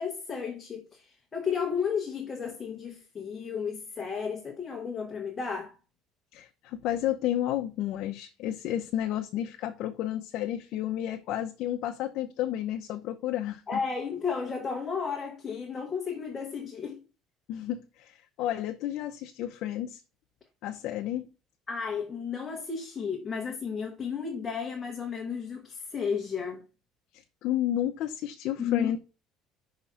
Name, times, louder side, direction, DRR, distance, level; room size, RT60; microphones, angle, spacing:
voice 1, 0.0-5.8 13.7-17.0 21.7-26.6 28.6-29.0, left 6 dB, 20° left, 1.0 m, -33 dB
voice 2, 6.3-13.8 17.5-20.0 20.6-21.3 27.1-29.0, left 12 dB, 55° left, 0.7 m, -31 dB
5.7 x 3.8 x 5.6 m
cardioid pair, 175°, 0 cm